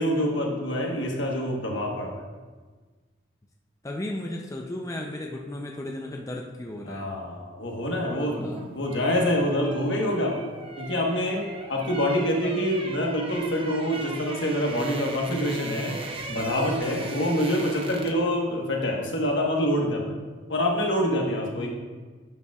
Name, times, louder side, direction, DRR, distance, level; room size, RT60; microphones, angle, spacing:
voice 1, 0.0-2.2 6.8-10.4 10.8-11.4 11.7-16.0 16.3-20.1 20.5-21.7, equal, 65° left, 0 dB, 1.3 m, -26 dB
voice 2, 3.8-7.1 8.1-8.6 21.6-21.7, left 1 dB, 15° left, 0 dB, 0.5 m, -35 dB
sound 1, 8.3-18.3 18.6-18.8, right 3 dB, 30° right, 0.6 m, -39 dB
11.0 x 6.8 x 2.4 m, 1.4 s
head